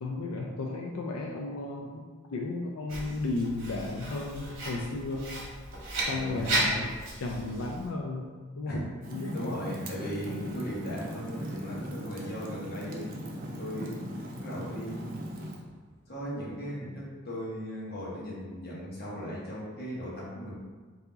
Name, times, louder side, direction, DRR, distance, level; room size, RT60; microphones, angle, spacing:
voice 1, 0.0-2.0 2.3-5.3 6.1-6.9 7.2-9.6, left 2 dB, 85° left, 0 dB, 0.4 m, -34 dB
Writing, 2.9-7.9, right 1 dB, 60° right, 1.3 m, -34 dB
voice 2, 6.1-6.8 8.7-8.8 9.3-13.1 13.6-14.0 14.4-15.2 16.1-20.5, equal, 45° left, -6 dB, 1.2 m, -37 dB
Fire, 9.0-15.6, equal, 40° right, 0.6 m, -39 dB
sound 1, 9.9-16.5, right 1 dB, 15° left, 1.3 m, -49 dB
4.5 x 2.8 x 3.9 m, 1.4 s
head